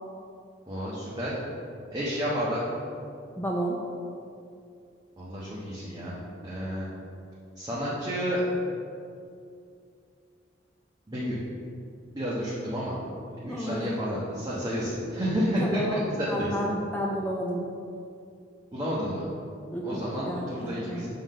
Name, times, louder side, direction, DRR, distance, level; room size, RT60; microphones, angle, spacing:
voice 1, 0.7-1.3 1.9-2.6 5.2-6.1 6.4-6.8 7.6-8.4 11.1-11.4 12.1-12.9 13.4-16.5 18.7-19.2 19.8-21.1, equal, 20° right, -8 dB, 1.1 m, -30 dB
voice 2, 3.4-3.8 13.5-13.9 15.6-17.6 19.7-21.0, equal, 10° left, -2 dB, 0.5 m, -31 dB
7.1 x 3.9 x 5.4 m, 2.4 s
head